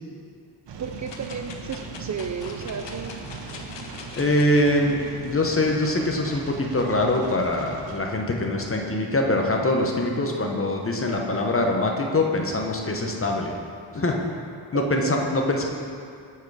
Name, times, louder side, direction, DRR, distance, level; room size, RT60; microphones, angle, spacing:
sound 1, 0.7-8.0, right 4 dB, 80° right, 0.8 m, -39 dB
voice 1, 0.8-3.1 10.4-10.6 14.7-15.2, right 6 dB, 45° right, 5 dB, 0.4 m, -33 dB
sound 2, 1.0-4.7 5.3-5.4, left 4 dB, 85° left, 0.8 m, -42 dB
voice 2, 4.2-13.5 13.9-14.1 14.7-15.6, left 1 dB, 30° left, 1 dB, 0.9 m, -23 dB
8.2 x 4.7 x 4.7 m, 2.4 s
wide cardioid pair, 90°, 42 cm